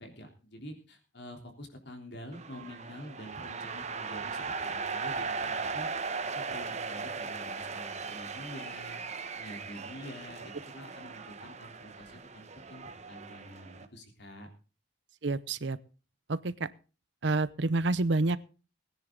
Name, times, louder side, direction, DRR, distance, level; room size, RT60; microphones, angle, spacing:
voice 1, 0.0-5.9 6.3-9.0 9.3-14.5, equal, 60° left, 4 dB, 3.5 m, -47 dB
sound 1, 2.3-13.9, right 4 dB, 35° right, 1.2 m, -38 dB
voice 2, 15.2-15.8 16.3-16.7 17.2-18.4, right 2 dB, 65° right, 17 dB, 0.7 m, -28 dB
19.5 x 10.0 x 3.9 m, 0.35 s
head